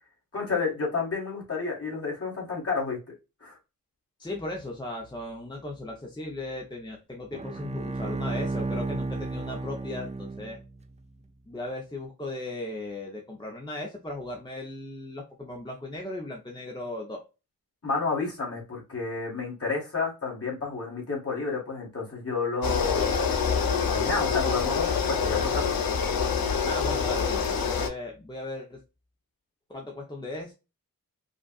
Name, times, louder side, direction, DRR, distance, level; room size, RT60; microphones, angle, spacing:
voice 1, 0.3-3.0 3.4-3.6 17.8-23.2 23.8-25.7, left 4 dB, 40° left, 2.0 m, -30 dB
voice 2, 4.2-10.6 11.5-17.2 26.6-28.8 29.7-30.5, left 2 dB, 10° left, 0.8 m, -37 dB
Bowed string instrument, 7.3-10.9, right 3 dB, 20° right, 0.3 m, -33 dB
sound 1, 22.6-27.9, left 6 dB, 75° left, 0.7 m, -26 dB
5.0 x 2.5 x 2.4 m
wide cardioid pair, 100°, 35 cm